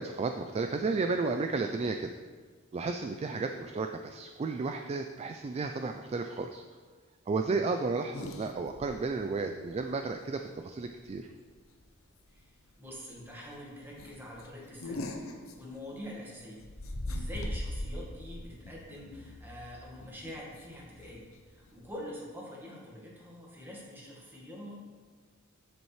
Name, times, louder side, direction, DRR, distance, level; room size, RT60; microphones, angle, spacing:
voice 1, 0.0-2.1 2.7-6.6 7.3-11.3, right 3 dB, 30° right, 6 dB, 0.3 m, -33 dB
sound 1, 8.1-8.9 9.3-9.4 9.7-9.8 11.0-11.3 11.6-11.8 12.3-12.4 12.7-12.8 13.2-13.4 13.9-16.2 16.6-21.9, left 1 dB, 85° left, 0.8 m, -40 dB
voice 2, 12.3-15.1 15.5-16.6 17.0-24.8, left 1 dB, 10° right, -4 dB, 1.7 m, -45 dB
8.1 x 7.4 x 3.2 m, 1.5 s
head